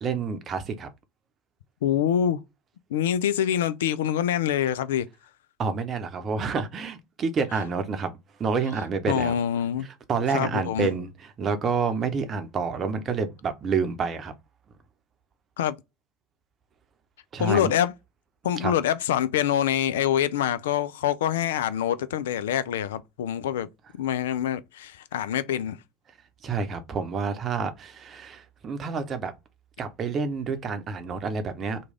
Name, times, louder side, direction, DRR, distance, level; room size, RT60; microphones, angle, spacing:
voice 1, 0.0-0.9 5.6-8.1 8.4-9.3 10.1-14.3 17.3-17.7 18.6-18.7 26.4-29.3 29.8-31.8, right 5 dB, 35° right, 0.7 m, -28 dB
voice 2, 1.8-2.4 2.9-5.1 9.1-9.9 10.3-10.9 15.6-15.8 17.4-17.9 18.4-23.7 24.0-25.8, left 10 dB, 70° left, 0.3 m, -25 dB
3.1 x 2.3 x 3.5 m
figure-of-eight pair, 75°, 0 cm